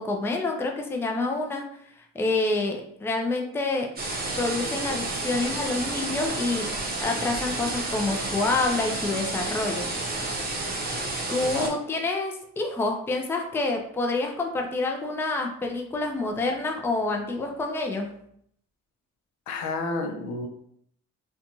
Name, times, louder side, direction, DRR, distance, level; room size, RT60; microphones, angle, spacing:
voice 1, 0.0-1.7 2.0-3.9 4.3-6.7 7.0-9.9 11.3-18.1, left 3 dB, 10° left, 2 dB, 0.4 m, -27 dB
sound 1, 4.0-11.7, right 2 dB, 30° right, 0.7 m, -30 dB
voice 2, 19.5-20.5, left 3 dB, 70° left, 5 dB, 0.5 m, -30 dB
2.5 x 2.3 x 2.9 m, 0.68 s
cardioid pair, 90°, 30 cm